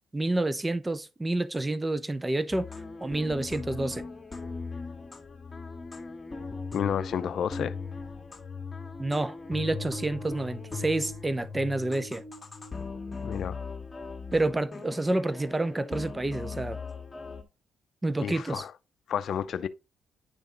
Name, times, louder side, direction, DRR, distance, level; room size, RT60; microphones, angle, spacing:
voice 1, 0.1-2.7 3.0-4.0 9.0-12.2 14.3-16.8 18.0-18.6, right 2 dB, 15° right, 0.6 m, -29 dB
sound 1, 2.5-17.4, left 4 dB, 25° left, 1.8 m, -39 dB
voice 2, 6.7-7.7 13.2-13.6 18.2-18.7 19.1-19.7, left 8 dB, 60° left, 0.5 m, -30 dB
10.0 x 3.5 x 3.8 m
cardioid pair, 90°, 0 cm